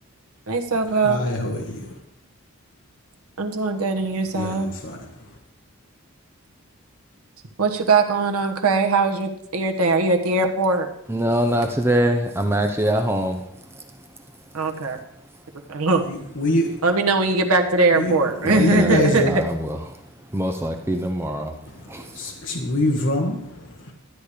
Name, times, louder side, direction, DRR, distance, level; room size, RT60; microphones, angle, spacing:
voice 1, 0.5-1.3 3.4-4.7 7.6-10.9 14.5-15.0 15.7-16.1 16.8-19.4, right 3 dB, 85° right, 3 dB, 1.3 m, -21 dB
voice 2, 1.0-2.0 4.3-5.4 16.0-16.8 17.9-19.3 21.7-23.9, left 1 dB, 55° left, 0 dB, 1.4 m, -25 dB
voice 3, 11.1-14.2 18.4-22.3, right 1 dB, 10° right, 4 dB, 0.6 m, -25 dB
12.5 x 8.6 x 5.0 m, 0.75 s
head